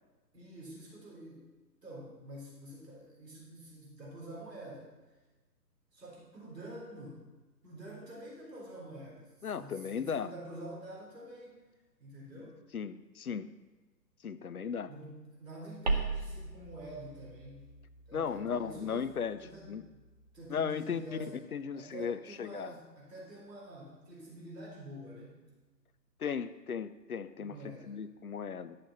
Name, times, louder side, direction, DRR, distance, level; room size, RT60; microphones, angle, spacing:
voice 1, 0.3-1.4 1.8-5.1 5.9-7.3 7.6-11.7 12.0-12.6 14.9-17.7 18.1-19.1 19.4-20.0 20.3-21.5 21.7-25.4 27.4-28.0, right 1 dB, 75° right, -5 dB, 3.9 m, -47 dB
voice 2, 9.4-10.3 12.7-13.5 14.2-14.9 18.1-19.4 19.7-19.8 20.5-21.2 21.5-22.7 26.2-27.6 27.9-28.8, left 7 dB, 60° left, 13 dB, 0.7 m, -36 dB
sound 1, 15.8-20.7, right 3 dB, 25° right, 0.8 m, -39 dB
11.5 x 6.6 x 5.7 m, 1.2 s
figure-of-eight pair, 135°, 50 cm